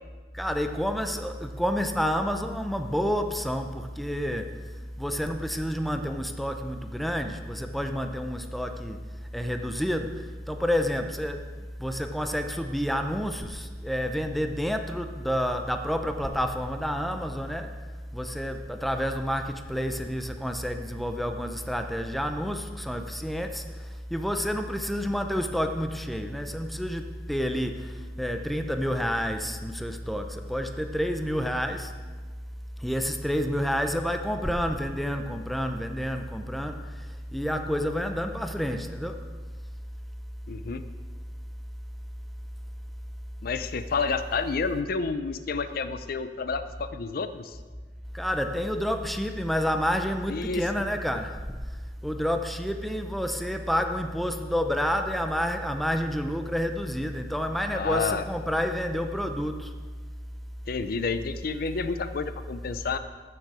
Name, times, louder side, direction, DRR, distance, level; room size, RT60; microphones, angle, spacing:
voice 1, 0.3-4.5 5.0-9.0 9.3-11.5 11.8-17.8 18.1-32.0 32.8-39.2 48.1-51.6 52.0-59.7, equal, ahead, 6 dB, 0.6 m, -29 dB
voice 2, 40.5-40.8 43.4-47.6 50.3-50.8 57.7-58.3 60.7-63.0, left 4 dB, 55° left, 11 dB, 0.5 m, -30 dB
15.0 x 6.7 x 4.8 m, 1.4 s
head